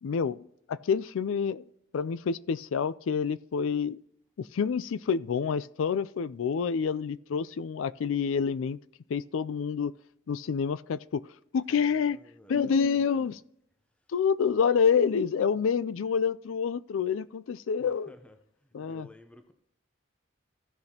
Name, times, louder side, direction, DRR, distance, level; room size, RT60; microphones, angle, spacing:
voice 1, 0.0-1.7 1.9-4.0 4.4-8.8 9.1-9.9 10.3-12.2 12.5-13.4 14.1-18.1 18.7-19.1, left 6 dB, 70° left, 0.4 m, -28 dB
voice 2, 11.7-13.2 13.9-14.1 17.7-19.5, left 1 dB, 5° left, 0.6 m, -54 dB
15.0 x 6.5 x 2.8 m
head